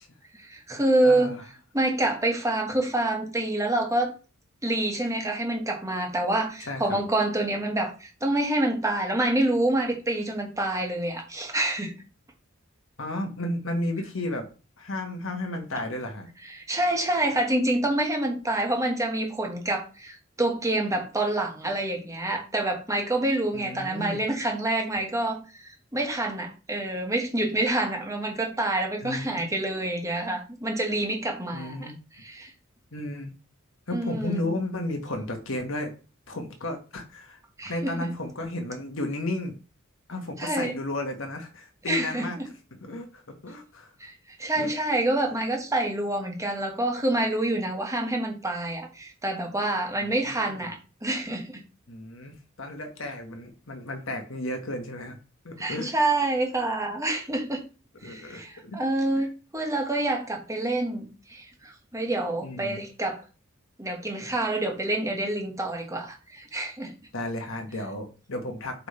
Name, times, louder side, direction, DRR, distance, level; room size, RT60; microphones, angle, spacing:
voice 1, 0.4-1.4 1.7-4.1 4.6-11.9 16.5-31.9 32.2-32.5 33.9-34.5 37.6-38.1 40.4-40.7 41.9-42.3 44.0-44.1 44.4-51.6 55.6-57.6 58.0-63.2 63.8-66.9, right 1 dB, 15° right, 2 dB, 1.4 m, -27 dB
voice 2, 1.0-1.4 6.7-7.0 13.0-14.5 14.8-16.3 23.5-24.2 29.0-29.5 31.5-31.9 32.9-33.3 33.9-35.9 36.3-37.4 37.6-39.5 40.1-43.9 44.6-44.7 50.0-50.7 51.9-55.2 55.4-55.9 58.0-58.8 62.4-62.8 67.1-68.9, left 1 dB, 70° left, 4 dB, 1.4 m, -33 dB
7.6 x 3.4 x 4.3 m, 0.34 s
head